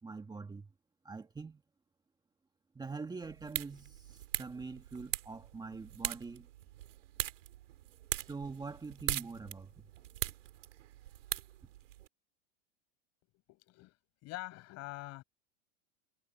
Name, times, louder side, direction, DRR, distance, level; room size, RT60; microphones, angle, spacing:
voice 1, 0.0-0.7 1.0-1.6 2.8-6.5 8.2-9.8, right 4 dB, 10° right, 1.9 m, -44 dB
sound 1, 3.2-12.1, right 13 dB, 75° right, 3.1 m, -41 dB
voice 2, 13.2-14.0 14.2-15.2, left 20 dB, 45° left, 6.0 m, -45 dB
hypercardioid pair, 115°, 37 cm